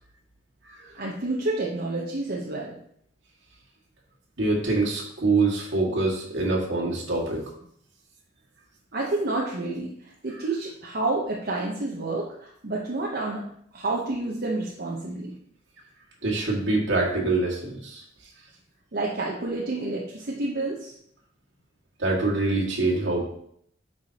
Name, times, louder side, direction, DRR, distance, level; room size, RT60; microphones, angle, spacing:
voice 1, 0.9-2.8 8.9-15.4 18.9-20.9, right 2 dB, 50° right, -3 dB, 0.9 m, -29 dB
voice 2, 4.4-7.4 10.3-10.4 16.2-18.0 22.0-23.2, right 3 dB, 70° right, -3 dB, 2.0 m, -25 dB
9.3 x 4.8 x 2.9 m, 0.69 s
head